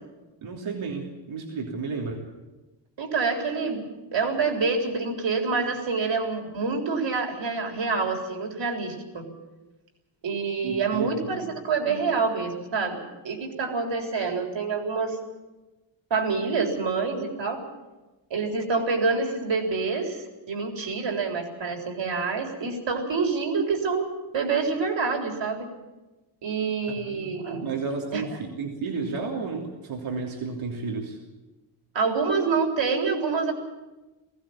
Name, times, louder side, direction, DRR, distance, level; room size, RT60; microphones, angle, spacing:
voice 1, 0.4-2.2 10.6-11.3 26.9-27.3 27.6-31.2, right 4 dB, 90° right, 0 dB, 3.1 m, -32 dB
voice 2, 3.0-9.2 10.2-13.0 13.2-15.2 16.1-17.6 18.3-24.1 24.3-25.7 26.4-27.6 28.1-28.3 31.9-33.5, right 4 dB, 65° right, 3 dB, 4.0 m, -27 dB
19.5 x 15.5 x 8.8 m, 1.1 s
cardioid pair, 90°, 47 cm